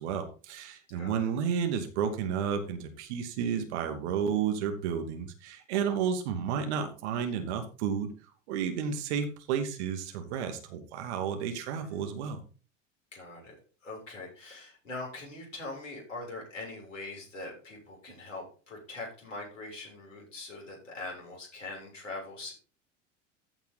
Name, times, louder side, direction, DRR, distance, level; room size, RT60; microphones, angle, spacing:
voice 1, 0.0-8.1 8.5-12.4, right 7 dB, 60° right, 6 dB, 2.6 m, -32 dB
voice 2, 13.1-13.5 13.8-22.5, left 2 dB, 80° left, -2 dB, 7.0 m, -42 dB
14.5 x 5.8 x 4.1 m, 0.35 s
figure-of-eight pair, 75°, 38 cm